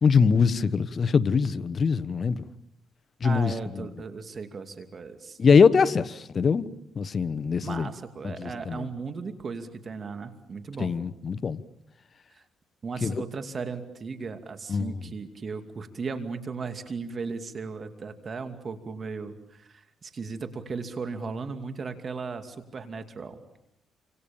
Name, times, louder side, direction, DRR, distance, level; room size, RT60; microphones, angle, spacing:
voice 1, 0.0-2.4 3.2-3.5 5.4-6.7 7.0-7.9 8.2-8.8 10.8-11.6 13.0-13.2 14.7-14.9, left 5 dB, 45° left, 1.2 m, -22 dB
voice 2, 3.2-5.4 7.6-10.9 12.3-12.4 12.8-23.6, right 4 dB, 40° right, 2.6 m, -36 dB
29.0 x 26.0 x 7.2 m
cardioid pair, 90°, 0 cm